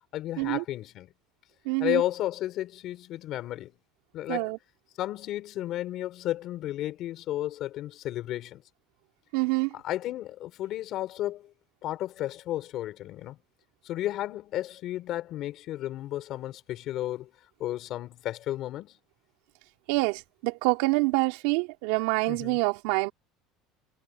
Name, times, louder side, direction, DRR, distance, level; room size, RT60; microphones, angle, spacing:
voice 1, 0.1-1.1 1.8-3.7 4.1-4.5 5.0-8.6 9.7-11.5 11.8-13.4 13.8-17.3 17.6-19.0 22.3-22.6, left 14 dB, 45° left, 4.8 m, -33 dB
voice 2, 1.6-2.0 4.3-4.6 9.3-9.7 19.9-23.1, right 24 dB, 75° right, 4.0 m, -26 dB
cardioid pair, 165°, 0 cm